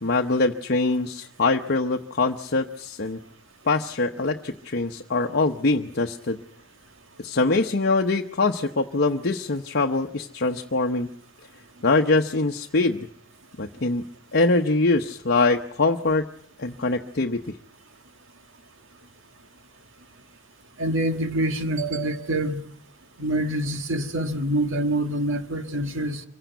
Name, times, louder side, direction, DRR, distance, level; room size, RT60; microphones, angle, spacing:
voice 1, 0.0-3.2 3.7-6.4 7.2-11.1 11.8-13.1 13.6-14.0 14.3-16.3 16.6-17.4, left 3 dB, 55° left, 1.0 m, -23 dB
voice 2, 20.8-22.7 23.2-26.2, right 1 dB, 65° right, 1.9 m, -26 dB
25.0 x 16.5 x 9.3 m
head